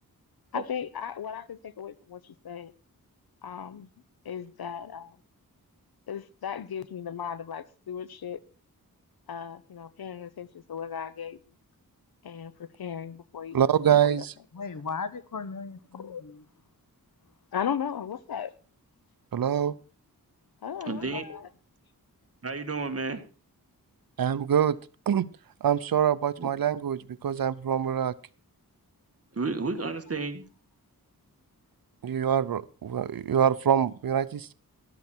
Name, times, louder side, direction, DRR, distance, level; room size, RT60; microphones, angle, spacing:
voice 1, 0.5-2.7 3.4-3.9 4.2-5.2 6.1-8.4 9.3-11.4 12.2-14.3 15.9-16.2 17.5-18.5 20.6-21.4, left 8 dB, 90° left, 0.9 m, -36 dB
voice 2, 13.5-14.3 19.3-19.8 24.2-24.8 25.1-25.3 25.6-28.1 32.0-34.5, right 9 dB, 70° right, 0.7 m, -25 dB
voice 3, 14.5-16.4 21.0-21.4, left 5 dB, 60° left, 1.1 m, -37 dB
voice 4, 20.9-21.2 22.4-23.2 26.4-26.5 29.3-30.4, right 3 dB, 40° right, 1.9 m, -31 dB
13.5 x 11.5 x 4.5 m
wide cardioid pair, 80°, 36 cm